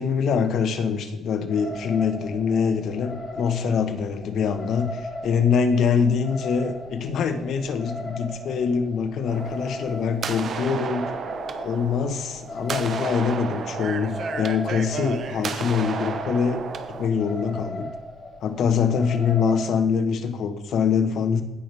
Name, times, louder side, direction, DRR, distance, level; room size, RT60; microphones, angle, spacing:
voice 1, 0.0-11.1 11.6-17.9 18.4-21.4, left 6 dB, 65° left, 7 dB, 1.2 m, -24 dB
sound 1, 1.5-19.7, left 1 dB, 45° left, 3.8 m, -38 dB
sound 2, 9.3-17.1, right 6 dB, 50° right, 0.8 m, -33 dB
16.5 x 6.0 x 3.4 m, 1.1 s
cardioid pair, 125°, 0 cm